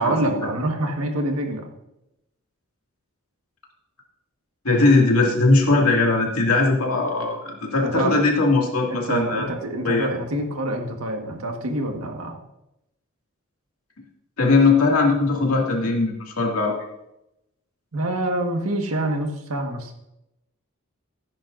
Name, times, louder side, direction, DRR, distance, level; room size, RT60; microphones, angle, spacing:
voice 1, 0.0-1.7 7.8-8.2 8.9-12.5 17.9-19.9, right 1 dB, 80° right, 3 dB, 1.6 m, -26 dB
voice 2, 4.6-9.5 9.8-10.1 14.4-16.8, left 3 dB, 85° left, 0 dB, 2.4 m, -19 dB
15.0 x 10.5 x 2.6 m, 0.87 s
head